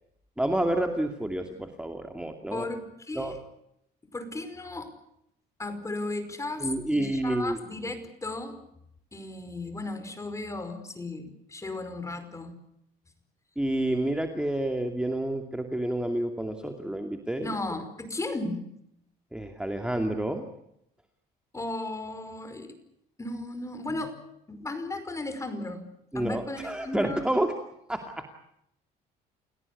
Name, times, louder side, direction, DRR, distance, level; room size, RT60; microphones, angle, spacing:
voice 1, 0.4-2.7 3.1-3.3 6.6-7.6 13.6-17.5 19.3-20.5 23.9-24.0 26.1-27.5 27.9-28.3, right 1 dB, 5° right, 4 dB, 2.5 m, -29 dB
voice 2, 2.5-3.4 4.0-4.9 5.6-8.6 9.1-12.6 17.4-18.6 21.5-22.8 23.2-24.2 24.5-25.9 26.1-27.2, left 2 dB, 15° left, 10 dB, 5.2 m, -35 dB
29.5 x 18.0 x 8.5 m, 0.77 s
cardioid pair, 110°, 17 cm